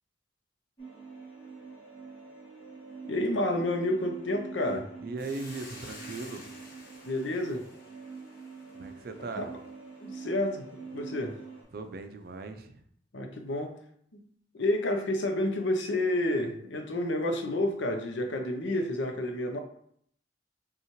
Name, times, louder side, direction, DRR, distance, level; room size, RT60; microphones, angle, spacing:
sound 1, 0.8-11.6, right 5 dB, 25° left, 1.2 m, -45 dB
voice 1, 3.0-4.9 7.1-7.6 9.4-9.5 10.0-10.6 10.9-11.4 13.1-13.7 14.1-14.2 14.5-19.6, left 1 dB, 75° left, 5 dB, 0.6 m, -29 dB
voice 2, 5.0-6.5 8.7-9.5 11.7-12.8, right 3 dB, 50° right, 7 dB, 0.4 m, -39 dB
Hiss, 5.2-9.7, left 2 dB, 50° left, 0.9 m, -50 dB
5.4 x 2.4 x 3.0 m, 0.66 s
head